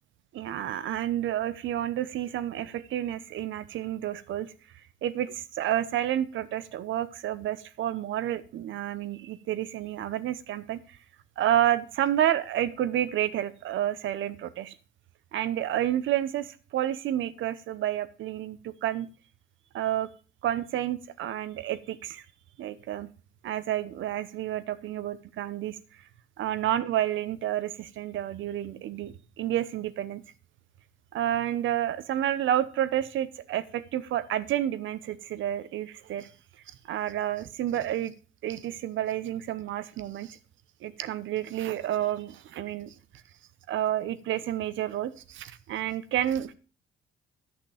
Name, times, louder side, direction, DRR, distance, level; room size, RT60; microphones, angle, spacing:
voice 1, 0.3-4.5 5.0-11.0 11.4-14.7 15.3-19.1 19.7-20.1 20.4-22.2 22.6-23.1 23.4-26.1 26.4-30.2 31.1-36.3 36.8-38.1 38.4-40.4 40.8-42.9 43.7-46.5, right 12 dB, 75° right, 14 dB, 0.8 m, -30 dB
10.5 x 5.9 x 4.9 m, 0.37 s
cardioid pair, 90°, 20 cm